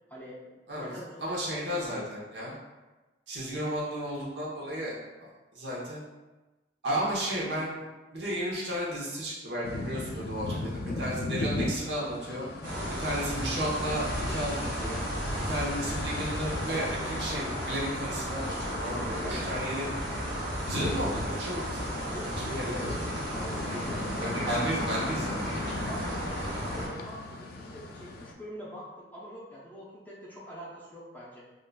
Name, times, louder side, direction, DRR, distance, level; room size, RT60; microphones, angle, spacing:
voice 1, 0.1-0.4 0.7-1.8 10.5-11.0 12.6-12.9 18.8-19.6 22.1-24.6 25.6-31.4, equal, 10° left, -7 dB, 0.6 m, -45 dB
voice 2, 1.2-2.5 3.3-6.0 6.8-7.8 8.1-10.6 11.0-12.4 13.0-15.0 15.5-19.9 20.7-22.9 24.2-25.4, equal, 70° right, -5 dB, 0.9 m, -33 dB
sound 1, 9.6-28.3, left 2 dB, 55° left, 0.3 m, -38 dB
sound 2, 12.6-26.9, equal, 90° right, 1.2 m, -34 dB
3.7 x 2.4 x 2.2 m, 1.1 s
head